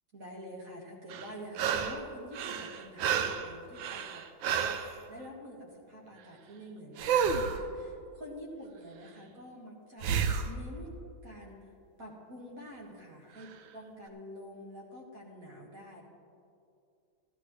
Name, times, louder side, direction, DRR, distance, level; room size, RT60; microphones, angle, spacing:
voice 1, 0.1-10.9 11.2-11.7 12.0-16.0, equal, 45° right, -3 dB, 2.1 m, -47 dB
sound 1, 1.1-2.0 2.3-4.9 7.0-7.6 10.0-10.5 13.4-13.5, right 7 dB, 85° right, 1.4 m, -30 dB
15.0 x 12.0 x 3.2 m, 2.5 s
omnidirectional pair, 2.1 m